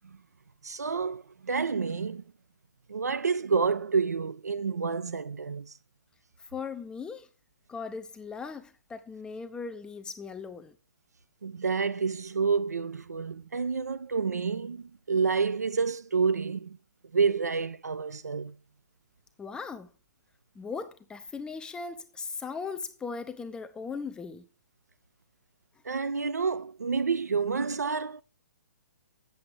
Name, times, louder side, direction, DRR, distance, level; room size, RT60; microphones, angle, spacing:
voice 1, 0.6-2.2 2.9-5.7 11.4-16.8 17.1-18.6 25.8-28.2, right 5 dB, 75° right, 0.8 m, -29 dB
voice 2, 6.4-7.3 7.7-10.7 19.4-19.9 20.6-24.5, left 5 dB, 10° left, 0.6 m, -38 dB
8.6 x 7.8 x 4.9 m
figure-of-eight pair, 125°, 9 cm